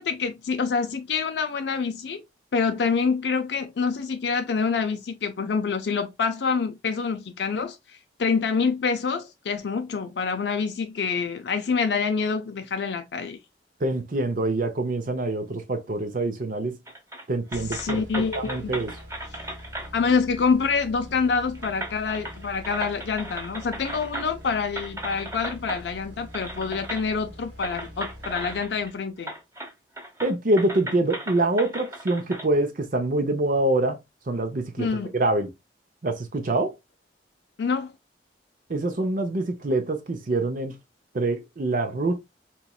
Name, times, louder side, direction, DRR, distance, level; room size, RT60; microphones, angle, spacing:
voice 1, 0.0-2.2 2.5-13.4 17.5-18.8 19.9-29.3 34.8-35.1 37.6-37.9, left 5 dB, 70° left, 0.4 m, -26 dB
voice 2, 13.8-16.8 17.3-18.9 30.2-34.0 34.3-34.9 35.1-35.5 36.0-36.8 38.7-40.8 41.1-42.2, right 2 dB, 50° right, 0.6 m, -25 dB
sound 1, 16.9-17.2 17.5-19.9 21.0-21.1 21.6-24.4 24.8-25.8 26.3-27.0 27.6-28.9 29.2-29.7 30.0-32.5, right 1 dB, 15° right, 1.1 m, -36 dB
sound 2, 17.5-29.2, equal, 80° right, 1.3 m, -44 dB
4.1 x 3.0 x 2.2 m
head